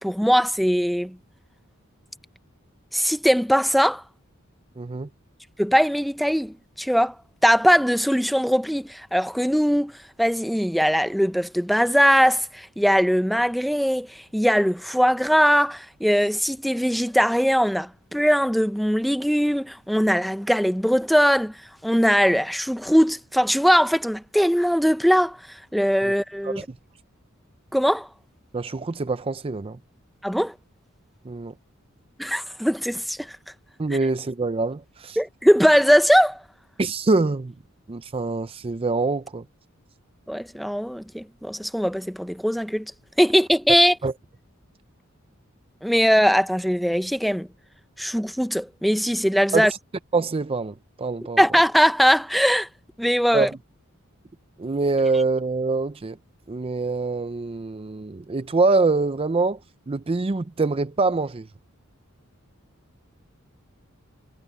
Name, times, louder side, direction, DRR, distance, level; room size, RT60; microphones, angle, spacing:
voice 1, 0.0-1.2 2.9-4.0 5.6-7.1 7.4-9.9 10.2-21.5 21.8-25.4 25.7-26.6 27.7-28.1 30.2-30.5 32.2-33.3 35.2-36.4 40.3-42.9 43.2-43.9 45.8-47.5 48.0-49.7 51.4-52.7 53.0-53.5, equal, ahead, 0.7 m, -20 dB
voice 2, 4.8-5.1 26.0-26.1 26.4-26.6 28.5-29.8 31.3-31.5 33.8-35.2 36.8-37.5 37.9-39.4 44.0-44.1 49.5-49.8 50.1-51.4 53.3-53.5 54.6-56.2 56.5-59.6 59.9-61.5, right 3 dB, 25° right, 0.5 m, -24 dB
head